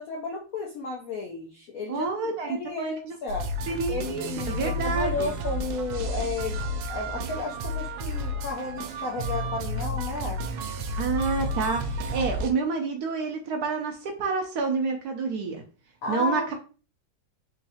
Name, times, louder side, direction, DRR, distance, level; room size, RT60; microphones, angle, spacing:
voice 1, 0.0-2.1 2.5-3.5 3.9-6.6 6.9-10.4 16.0-16.5, left 3 dB, 65° left, -1 dB, 0.9 m, -33 dB
voice 2, 1.9-3.1 3.7-5.3 11.0-15.6 16.1-16.5, right 4 dB, 70° right, 3 dB, 0.9 m, -29 dB
sound 1, 3.3-12.5, equal, 90° right, 1.4 m, -31 dB
3.7 x 3.1 x 2.7 m, 0.35 s
omnidirectional pair, 2.1 m